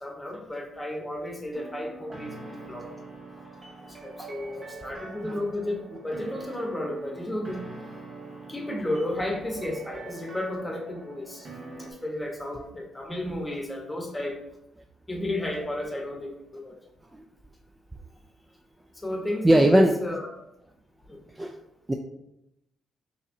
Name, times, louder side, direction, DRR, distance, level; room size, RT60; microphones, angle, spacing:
voice 1, 0.0-2.8 4.0-7.7 8.5-11.5 11.8-14.4 15.1-16.8 19.0-20.2 21.1-21.2, left 1 dB, 10° left, 1 dB, 1.0 m, -32 dB
sound 1, 1.5-11.9, right 3 dB, 35° right, 1.0 m, -43 dB
voice 2, 19.4-19.9 21.3-21.6 21.9-22.0, right 1 dB, 15° right, 3 dB, 0.3 m, -21 dB
5.4 x 2.9 x 2.7 m, 0.83 s
cardioid pair, 90°, 0 cm